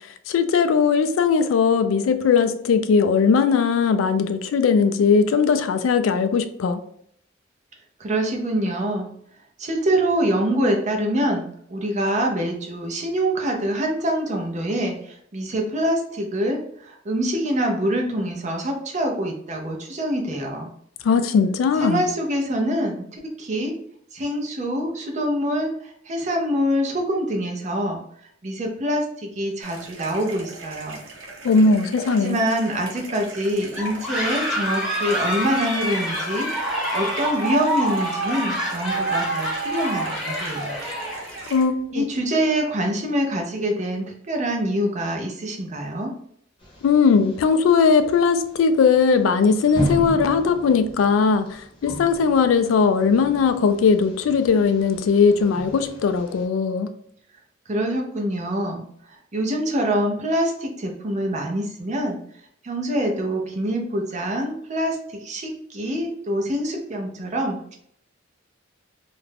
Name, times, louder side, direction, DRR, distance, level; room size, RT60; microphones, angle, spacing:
voice 1, 0.3-6.8 21.0-22.1 31.4-32.4 41.5-42.1 46.8-56.9, left 5 dB, 85° left, 0.3 m, -19 dB
voice 2, 8.0-9.1 9.6-20.7 21.8-23.7 24.1-25.7 26.1-28.0 28.4-31.0 32.1-40.8 41.9-46.1 57.7-58.8 59.3-62.2 62.6-67.8, right 1 dB, 35° right, 0.5 m, -25 dB
sound 1, 29.6-41.6, right 2 dB, 70° right, 0.7 m, -39 dB
sound 2, 33.7-41.6, right 1 dB, 5° right, 1.0 m, -27 dB
sound 3, 46.6-56.4, right 1 dB, 25° left, 0.8 m, -35 dB
2.4 x 2.1 x 3.2 m
head